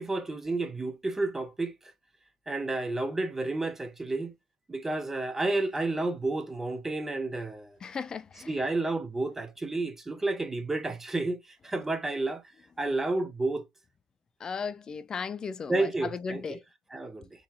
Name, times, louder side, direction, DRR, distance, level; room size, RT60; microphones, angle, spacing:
voice 1, 0.0-1.9 2.5-4.3 4.7-7.8 8.5-13.7 15.7-16.6 16.9-17.3, right 2 dB, 10° right, 0.6 m, -31 dB
voice 2, 7.8-8.5 14.4-16.6, left 5 dB, 25° left, 0.4 m, -36 dB
3.8 x 2.7 x 2.9 m
supercardioid pair, 115°, 3 cm